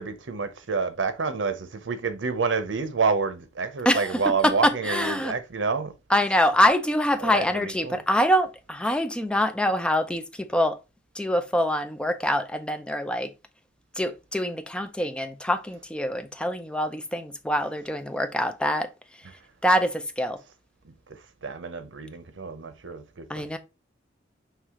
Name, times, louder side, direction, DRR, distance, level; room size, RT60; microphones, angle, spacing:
voice 1, 0.0-5.9 7.2-8.0 21.1-23.6, right 4 dB, 85° right, 0.7 m, -28 dB
voice 2, 3.9-5.3 6.1-10.8 11.2-13.3 14.0-18.9 19.6-20.4 23.3-23.6, equal, 5° left, 0.4 m, -25 dB
4.7 x 3.2 x 3.5 m
head